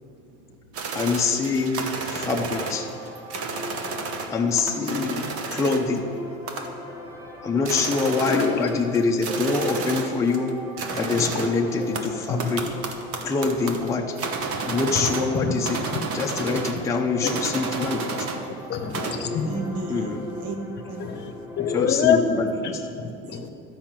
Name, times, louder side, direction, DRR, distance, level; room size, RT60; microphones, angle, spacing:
voice 1, 0.0-0.4 0.9-1.0 7.0-7.1 19.2-20.6 20.9-21.3 23.3-23.5, right 4 dB, 80° right, 1.4 m, -37 dB
sound 1, 0.7-4.3 4.6-6.0 6.5-6.9 7.3-7.4 7.6-10.5 10.8-15.4 15.6-16.9 17.2-18.4 18.7-19.3, right 4 dB, 50° right, 1.1 m, -32 dB
voice 2, 0.9-2.9 4.3-5.2 5.5-6.0 7.4-10.5 10.9-12.6 13.2-14.0 14.6-15.8 16.1-18.3 19.9-20.3 21.7-22.8, left 4 dB, 10° left, 0.5 m, -25 dB
sound 2, 2.4-21.8, left 1 dB, 10° right, 1.0 m, -41 dB
voice 3, 8.3-8.7 11.1-11.4 12.3-12.4 13.3-13.4 14.9-15.1 15.4-15.5 16.4-16.6 17.2-17.3 18.7-19.6 21.0-22.2 22.6-23.5, left 7 dB, 35° left, 0.8 m, -26 dB
12.0 x 5.5 x 7.4 m
cardioid pair, 165°, 29 cm